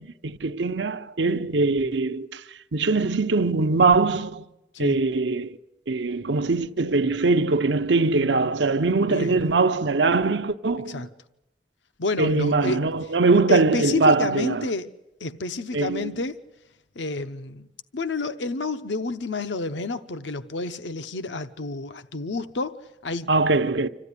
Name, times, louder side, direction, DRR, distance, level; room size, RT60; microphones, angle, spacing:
voice 1, 0.0-4.4 4.8-5.6 5.9-11.1 12.2-14.7 15.7-16.1 23.3-23.9, right 3 dB, 85° right, 0.8 m, -22 dB
voice 2, 9.1-9.4 10.9-11.1 12.0-12.8 13.5-14.9 15.2-16.4 17.0-17.7 17.9-23.3, left 3 dB, 85° left, 0.8 m, -29 dB
26.0 x 14.5 x 9.7 m
head